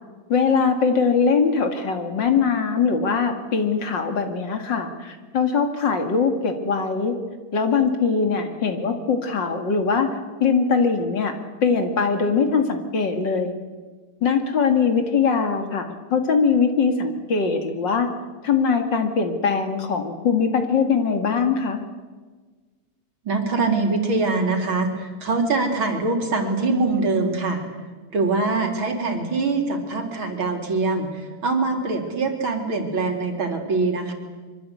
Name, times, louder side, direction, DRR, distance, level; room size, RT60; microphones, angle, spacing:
voice 1, 0.3-7.2 7.5-11.3 11.6-13.5 14.2-18.1 18.4-21.8, left 5 dB, 55° left, 6 dB, 2.6 m, -21 dB
voice 2, 23.3-27.6 28.1-34.1, right 3 dB, 65° right, 4 dB, 3.9 m, -23 dB
24.5 x 24.0 x 8.4 m, 1.4 s
omnidirectional pair, 2.4 m